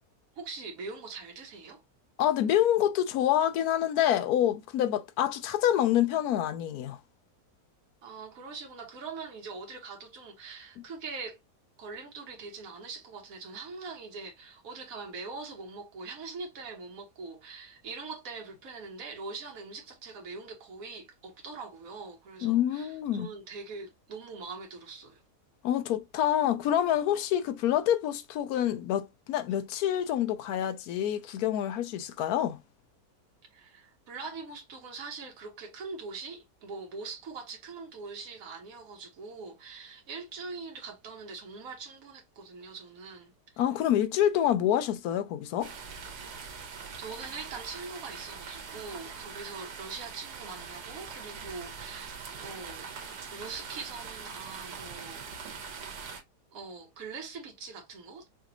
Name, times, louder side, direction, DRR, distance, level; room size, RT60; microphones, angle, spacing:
voice 1, 0.3-1.8 8.0-11.4 11.8-25.2 33.5-43.6 47.0-52.9 53.3-55.2 56.5-58.3, right 4 dB, 60° right, 1.5 m, -42 dB
voice 2, 2.2-7.0 22.4-23.3 25.6-32.6 43.6-45.7, left 11 dB, 75° left, 1.0 m, -27 dB
sound 1, 45.6-56.2, right 5 dB, 85° right, 1.6 m, -42 dB
5.1 x 2.4 x 2.9 m
omnidirectional pair, 1.7 m